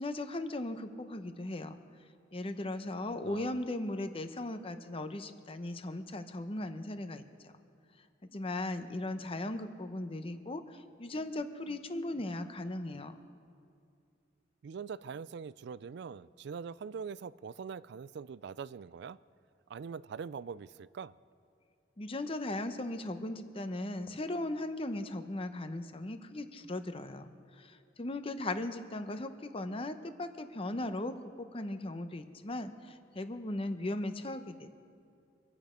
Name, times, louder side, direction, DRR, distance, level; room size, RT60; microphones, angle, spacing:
voice 1, 0.0-1.8 2.3-7.5 8.2-13.2 22.0-34.7, left 1 dB, 30° left, 9 dB, 0.7 m, -38 dB
voice 2, 3.2-3.6 14.6-19.2 19.7-21.1, right 6 dB, 60° right, 19 dB, 0.3 m, -43 dB
25.5 x 8.6 x 5.1 m, 2.5 s
head